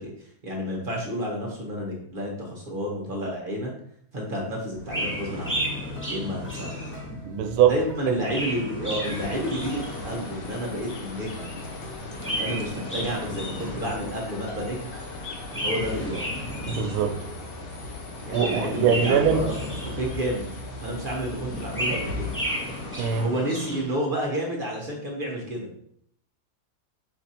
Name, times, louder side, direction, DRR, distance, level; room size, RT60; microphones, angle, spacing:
voice 1, 0.0-3.7 4.1-5.6 6.1-6.8 7.7-9.8 10.0-11.5 12.4-14.9 15.6-16.3 18.2-19.5 20.0-20.4 20.8-22.3 23.1-25.7, equal, 40° right, -1 dB, 0.9 m, -30 dB
sound 1, 4.7-22.5, left 1 dB, 35° left, 1.4 m, -41 dB
Chirp tweet, 4.8-7.3 8.0-10.4 12.0-14.2 15.4-17.3 18.1-20.4 21.4-24.0, equal, 10° left, 0.8 m, -33 dB
voice 2, 7.2-7.7 16.7-17.1 18.3-19.5 23.0-23.3, right 8 dB, 85° right, 5 dB, 1.1 m, -22 dB
sound 2, 9.0-23.2, left 2 dB, 55° left, 0.7 m, -39 dB
4.5 x 2.5 x 4.2 m, 0.66 s
omnidirectional pair, 1.6 m